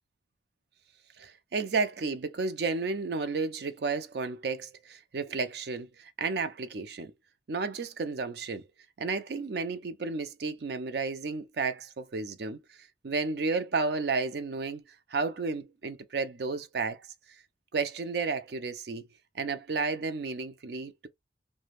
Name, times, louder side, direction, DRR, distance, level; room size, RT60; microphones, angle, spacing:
voice 1, 1.2-7.1 7.5-8.7 9.0-12.6 13.0-14.8 15.1-17.1 17.7-19.1 19.4-21.1, right 4 dB, 65° right, 0.4 m, -32 dB
2.4 x 2.2 x 3.2 m
head